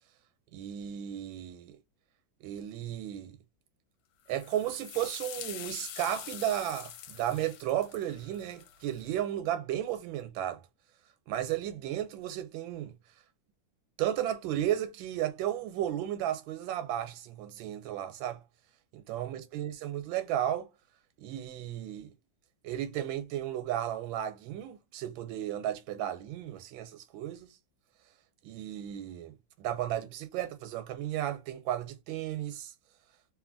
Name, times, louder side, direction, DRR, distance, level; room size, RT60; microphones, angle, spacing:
voice 1, 0.5-1.8 2.4-3.4 4.3-10.6 11.3-12.9 14.0-18.4 19.1-20.7 21.2-22.1 22.6-27.5 28.4-32.7, right 11 dB, 85° right, 1.4 m, -34 dB
sound 1, 4.3-9.1, left 10 dB, 75° left, 1.1 m, -45 dB
2.8 x 2.7 x 2.5 m
omnidirectional pair, 2.1 m